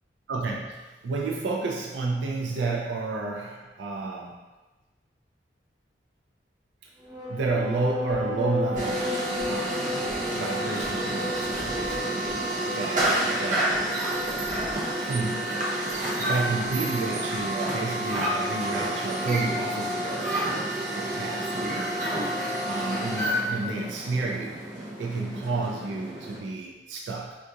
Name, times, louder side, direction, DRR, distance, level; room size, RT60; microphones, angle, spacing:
voice 1, 0.3-4.4 7.3-9.1 9.5-10.0 10.3-12.2 12.6-13.8 15.0-15.5 16.2-22.0 22.7-24.6 25.0-27.4, right 3 dB, 85° right, -1 dB, 0.4 m, -31 dB
sound 1, 7.0-18.9, left 1 dB, 15° right, 0.7 m, -35 dB
sound 2, 8.8-26.4, right 1 dB, 45° right, 0.7 m, -29 dB
sound 3, 11.0-12.9 13.9-15.5, equal, 25° left, 0.4 m, -46 dB
3.6 x 2.4 x 2.8 m, 1.1 s
head